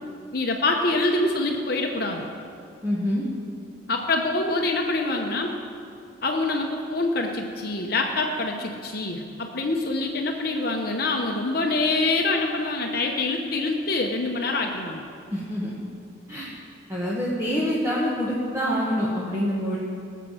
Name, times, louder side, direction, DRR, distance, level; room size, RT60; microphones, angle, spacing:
voice 1, 0.3-2.2 3.9-5.5 6.2-15.0, left 2 dB, 50° left, 2 dB, 1.0 m, -25 dB
voice 2, 2.8-3.2 15.3-15.7 16.3-16.5 16.9-19.8, equal, 15° right, -7 dB, 1.5 m, -26 dB
19.5 x 7.5 x 5.8 m, 2.4 s
head